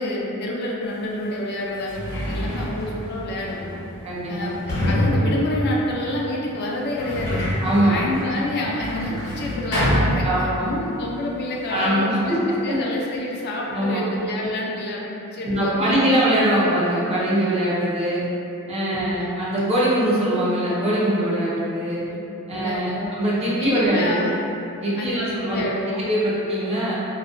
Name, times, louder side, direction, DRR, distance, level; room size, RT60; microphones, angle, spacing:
voice 1, 0.0-3.8 4.3-7.5 7.8-12.4 12.6-16.0 18.9-19.3 22.0-22.2 22.5-23.1 23.6-24.3 25.0-26.1, left 1 dB, 50° left, -3 dB, 0.4 m, -28 dB
Sliding door, 0.9-1.0 1.6-10.8 11.1-11.9, equal, 70° left, 0.8 m, -27 dB
voice 2, 4.0-4.6 7.6-8.0 9.0-9.1 10.2-10.7 11.7-12.8 13.7-14.0 15.4-18.2 18.7-22.0 22.5-24.3 24.8-25.6 26.0-27.0, right 1 dB, 30° right, -8 dB, 0.4 m, -22 dB
2.4 x 2.1 x 2.4 m, 2.8 s
head